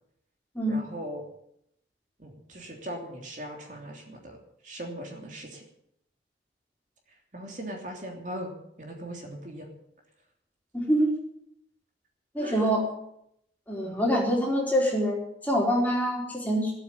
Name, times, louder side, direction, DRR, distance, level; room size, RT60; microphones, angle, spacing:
voice 1, 0.7-1.2 2.2-4.4 4.6-5.6 7.3-8.5 8.8-9.7 12.3-12.7 13.8-14.0, equal, 45° right, 1 dB, 3.1 m, -39 dB
voice 2, 10.7-11.1 12.3-12.8 13.7-16.7, equal, 10° left, -2 dB, 4.3 m, -25 dB
17.0 x 8.6 x 9.7 m, 0.76 s
head